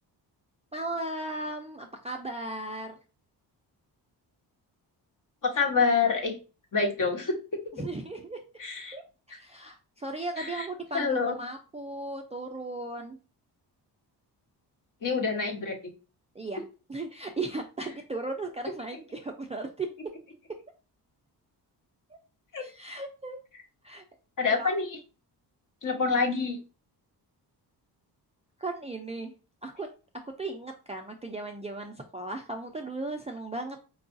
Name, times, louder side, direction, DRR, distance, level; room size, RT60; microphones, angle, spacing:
voice 1, 0.7-3.0 7.7-8.4 8.9-9.0 9.3-13.2 16.4-16.6 16.9-19.9 22.6-23.4 23.8-24.0 24.6-24.7 28.6-29.3 29.6-29.9 30.4-33.8, right 2 dB, 15° right, 2 dB, 0.4 m, -36 dB
voice 2, 5.4-6.3 6.7-7.3 8.6-9.0 10.4-10.7 10.9-11.3 15.0-15.9 22.5-22.6 24.4-25.0 25.8-26.6, left 4 dB, 50° left, 1 dB, 1.1 m, -27 dB
4.6 x 2.3 x 2.5 m, 0.33 s
cardioid pair, 95°, 41 cm